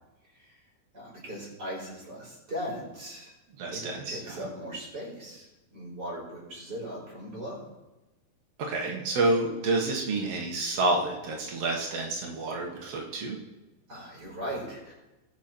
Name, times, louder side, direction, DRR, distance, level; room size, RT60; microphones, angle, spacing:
voice 1, 0.9-3.3 3.7-7.6 13.9-14.9, equal, 20° right, -3 dB, 4.6 m, -39 dB
voice 2, 3.6-4.5 8.6-13.4, right 2 dB, 90° right, -1 dB, 1.3 m, -29 dB
20.5 x 7.2 x 4.5 m, 1.1 s
omnidirectional pair, 5.3 m